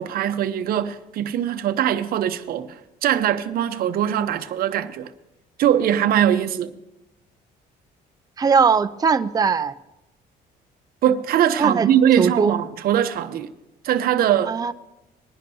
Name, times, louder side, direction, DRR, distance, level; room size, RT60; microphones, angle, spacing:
voice 1, 0.0-5.1 5.6-6.7 11.0-13.5 13.8-14.5, right 10 dB, 60° right, 0.7 m, -21 dB
voice 2, 8.4-9.7 11.6-11.9 12.2-12.5 14.5-14.7, right 5 dB, 20° right, 0.5 m, -19 dB
20.5 x 10.5 x 2.8 m
cardioid pair, 110°, 17 cm